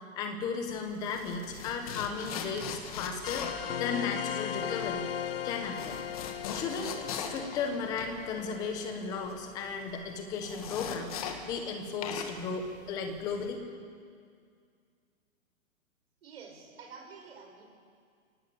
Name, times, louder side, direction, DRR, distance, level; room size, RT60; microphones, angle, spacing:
voice 1, 0.2-5.1 5.4-6.0 6.5-13.6, left 5 dB, 10° left, 5 dB, 1.1 m, -35 dB
sound 1, 0.7-11.7 12.0-13.5, left 7 dB, 25° left, 1.6 m, -40 dB
sound 2, 3.2-10.3, left 9 dB, 45° left, 0.6 m, -38 dB
voice 2, 16.2-17.6, right 5 dB, 45° right, 2 dB, 5.8 m, -49 dB
23.0 x 18.0 x 8.5 m, 2.2 s
hypercardioid pair, 170°, 40 cm